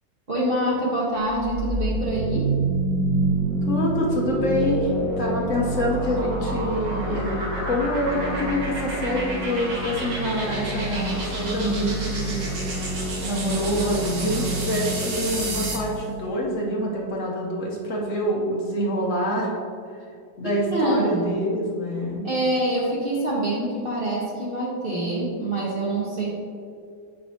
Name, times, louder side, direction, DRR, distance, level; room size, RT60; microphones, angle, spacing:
voice 1, 0.3-2.5 20.4-21.4 22.2-26.4, right 1 dB, 30° right, -5 dB, 1.4 m, -25 dB
sound 1, 1.1-15.9, right 2 dB, 75° right, 2.0 m, -27 dB
voice 2, 3.7-12.4 13.2-19.6 20.4-22.3, equal, 50° left, -3 dB, 1.2 m, -26 dB
8.5 x 5.4 x 2.9 m, 2.3 s
omnidirectional pair, 2.1 m